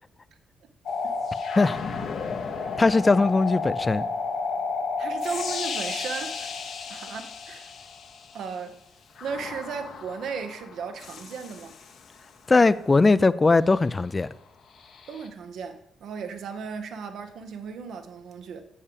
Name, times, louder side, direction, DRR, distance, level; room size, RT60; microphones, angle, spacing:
sound 1, 0.9-8.4 9.2-12.2 14.8-15.3, left 4 dB, 65° left, 0.9 m, -32 dB
voice 1, 2.8-4.1 12.5-14.3, left 3 dB, 25° left, 0.4 m, -20 dB
voice 2, 5.0-6.5 6.9-7.7 8.3-8.8 9.2-11.8 15.1-18.6, right 6 dB, 75° right, 1.0 m, -36 dB
6.9 x 5.6 x 6.8 m
cardioid pair, 75°, 0 cm